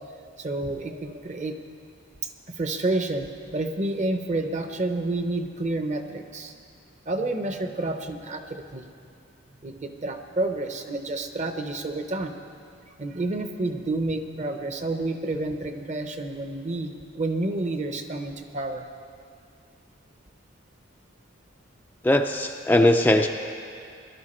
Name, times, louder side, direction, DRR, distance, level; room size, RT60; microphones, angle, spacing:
voice 1, 0.4-1.6 2.5-6.5 7.1-8.8 9.6-12.3 13.0-18.8, right 2 dB, 35° right, 6 dB, 0.8 m, -29 dB
voice 2, 22.0-23.3, left 1 dB, 10° left, 3 dB, 0.3 m, -19 dB
18.5 x 11.5 x 4.3 m, 2.4 s
head